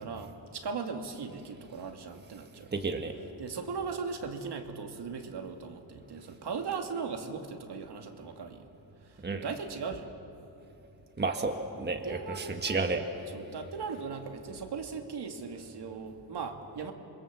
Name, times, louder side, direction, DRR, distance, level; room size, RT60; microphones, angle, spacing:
voice 1, 0.0-2.7 3.4-8.7 9.0-10.1 12.0-12.8 13.3-16.9, right 5 dB, 65° right, 4 dB, 2.4 m, -38 dB
voice 2, 2.7-3.1 9.2-9.4 11.2-13.0, right 3 dB, 25° right, 5 dB, 1.5 m, -31 dB
27.5 x 22.0 x 7.5 m, 2.8 s
cardioid pair, 100°, 43 cm